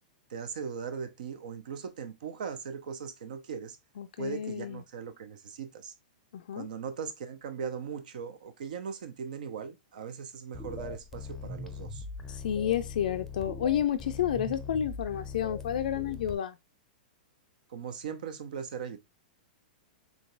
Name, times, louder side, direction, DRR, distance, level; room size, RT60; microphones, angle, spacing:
voice 1, 0.3-3.8 4.2-5.9 6.5-12.1 17.7-19.0, right 6 dB, 65° right, 0.7 m, -39 dB
voice 2, 4.0-4.8 6.3-6.7 12.3-16.6, left 9 dB, 70° left, 0.4 m, -30 dB
sound 1, 10.5-16.3, left 4 dB, 5° left, 0.6 m, -41 dB
3.9 x 3.4 x 2.4 m
hypercardioid pair, 110°, 5 cm